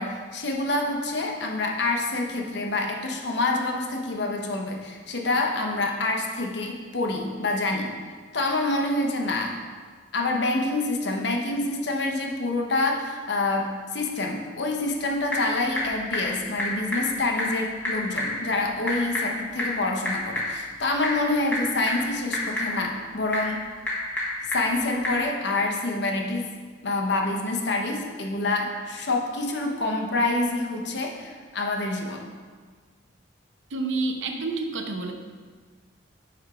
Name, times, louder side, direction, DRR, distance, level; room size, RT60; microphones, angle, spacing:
voice 1, 0.0-7.9 8.3-9.6 10.1-23.7 24.5-26.5 26.8-32.2, left 2 dB, 60° left, 1 dB, 0.9 m, -27 dB
Typing / Telephone, 14.7-25.2, left 1 dB, 10° left, 1.7 m, -31 dB
voice 2, 33.7-35.1, right 3 dB, 75° right, 4 dB, 0.7 m, -28 dB
8.5 x 3.5 x 4.8 m, 1.5 s
head